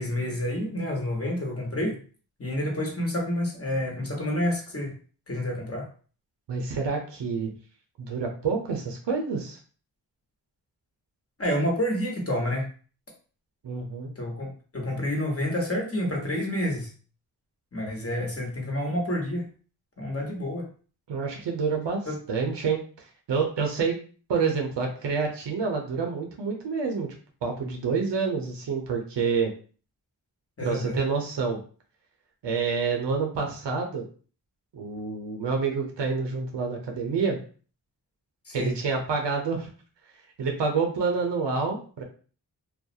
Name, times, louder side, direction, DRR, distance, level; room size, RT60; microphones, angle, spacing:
voice 1, 0.0-2.0 2.4-4.9 5.3-5.8 11.4-12.7 14.2-16.9 17.7-19.5 20.0-20.7 22.1-22.2 30.6-31.0 38.4-38.8, left 1 dB, 35° left, -1 dB, 1.1 m, -29 dB
voice 2, 6.5-7.5 8.0-9.6 13.6-14.1 21.1-22.0 22.3-22.8 23.3-24.0 24.3-27.1 27.4-29.5 30.6-31.6 32.4-34.0 34.7-37.4 38.5-39.7 40.4-42.0, right 5 dB, 80° right, 2 dB, 0.6 m, -28 dB
2.3 x 2.1 x 2.6 m, 0.40 s
cardioid pair, 40°, 42 cm